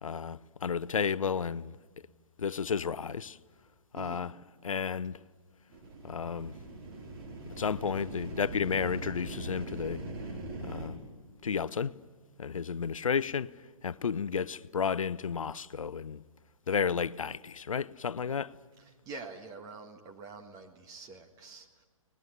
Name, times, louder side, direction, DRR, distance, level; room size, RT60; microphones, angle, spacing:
voice 1, 0.0-1.7 2.4-3.4 3.9-4.3 4.6-5.2 6.0-6.5 7.6-10.0 10.6-11.0 11.4-11.9 12.4-13.5 13.8-16.2 16.7-18.6, left 6 dB, 70° left, 0.7 m, -32 dB
voice 2, 3.9-4.3 18.8-21.8, right 4 dB, 20° right, 1.6 m, -46 dB
sound 1, 5.7-10.9, right 2 dB, 45° right, 4.5 m, -41 dB
23.5 x 20.0 x 9.7 m
figure-of-eight pair, 130°, 18 cm